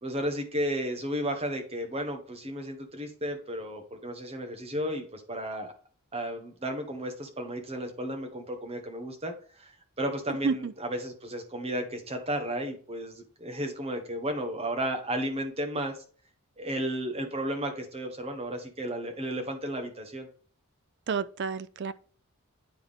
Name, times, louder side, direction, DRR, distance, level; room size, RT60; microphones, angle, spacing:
voice 1, 0.0-5.7 6.1-9.3 9.6-9.7 10.0-15.9 16.6-20.3, right 1 dB, 30° right, 1.2 m, -33 dB
voice 2, 21.1-21.9, right 5 dB, 55° right, 0.4 m, -30 dB
9.8 x 3.5 x 3.6 m
head